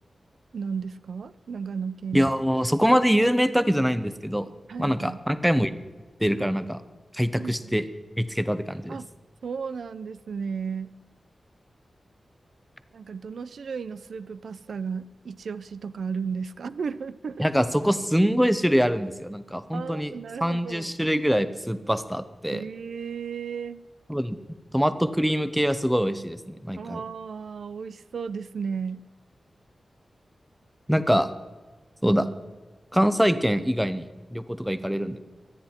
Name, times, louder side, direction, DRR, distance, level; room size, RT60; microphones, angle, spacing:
voice 1, 0.5-2.3 4.7-5.2 7.4-7.7 8.9-9.1 9.4-10.9 12.9-17.5 19.7-20.9 22.5-23.8 26.8-29.0, right 6 dB, 90° right, 15 dB, 0.5 m, -34 dB
voice 2, 2.1-4.5 4.8-5.7 6.2-6.8 7.1-7.8 8.2-9.0 17.4-20.1 20.4-22.6 24.1-24.4 24.7-27.0 30.9-31.3 32.0-32.3 32.9-35.2, equal, ahead, 12 dB, 0.8 m, -24 dB
24.5 x 10.0 x 4.4 m, 1.3 s
wide cardioid pair, 145°, 0 cm